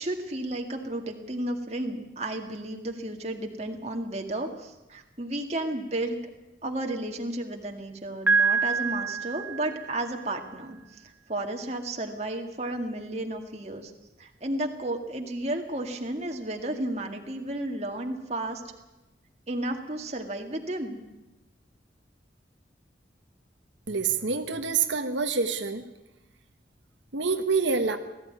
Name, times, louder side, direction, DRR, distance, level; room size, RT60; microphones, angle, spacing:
voice 1, 0.0-6.2 6.6-13.9 14.2-18.6 19.5-21.0, right 1 dB, 35° right, 3 dB, 2.0 m, -33 dB
Piano, 8.3-10.2, right 4 dB, 10° right, 1.0 m, -26 dB
voice 2, 23.9-25.8 27.1-28.0, right 5 dB, 85° right, 6 dB, 1.4 m, -26 dB
19.0 x 14.5 x 9.5 m, 1.0 s
head